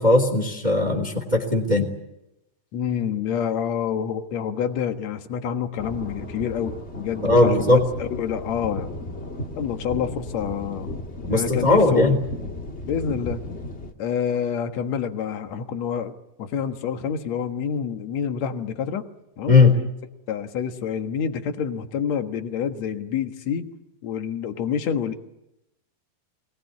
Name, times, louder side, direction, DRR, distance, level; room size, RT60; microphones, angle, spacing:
voice 1, 0.0-1.9 7.2-7.8 11.3-12.2 19.5-19.7, left 2 dB, 10° right, 5 dB, 2.5 m, -18 dB
voice 2, 2.7-9.0 9.6-10.9 11.2-12.2 12.9-13.4 14.0-19.1 19.4-19.6 20.3-23.7 24.0-25.2, left 7 dB, 55° left, 7 dB, 2.1 m, -27 dB
sound 1, 5.8-13.9, left 1 dB, 85° left, 0.6 m, -35 dB
25.0 x 20.5 x 9.6 m, 0.90 s
omnidirectional pair, 4.7 m